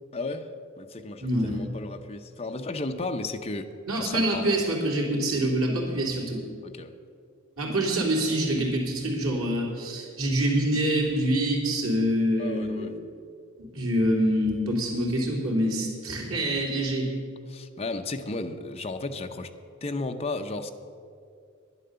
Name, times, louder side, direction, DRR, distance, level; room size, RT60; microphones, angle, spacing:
voice 1, 0.1-0.5 0.8-3.7 3.9-4.4 6.6-6.9 12.4-13.0 17.5-19.5 19.8-20.7, left 2 dB, 30° left, 5 dB, 0.7 m, -34 dB
voice 2, 1.2-1.6 3.9-6.4 7.6-13.0 13.6-17.1, right 1 dB, 90° right, -2 dB, 3.3 m, -26 dB
11.5 x 10.5 x 6.9 m, 2.4 s
head